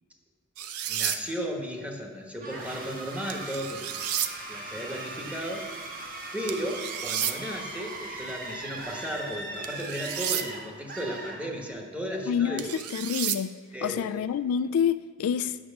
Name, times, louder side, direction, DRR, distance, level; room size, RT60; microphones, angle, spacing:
sound 1, 0.6-1.2 3.3-4.3 6.5-7.3 9.6-10.5 12.6-13.4, right 10 dB, 85° right, 0.5 m, -31 dB
voice 1, 0.9-3.9 4.5-5.7 6.3-12.7 13.7-14.2, equal, 5° right, 1.2 m, -35 dB
sound 2, 2.4-12.0, right 2 dB, 40° right, 1.3 m, -39 dB
voice 2, 12.3-12.7 12.9-13.5 13.8-15.6, left 8 dB, 70° left, 0.3 m, -27 dB
8.8 x 6.2 x 7.1 m
head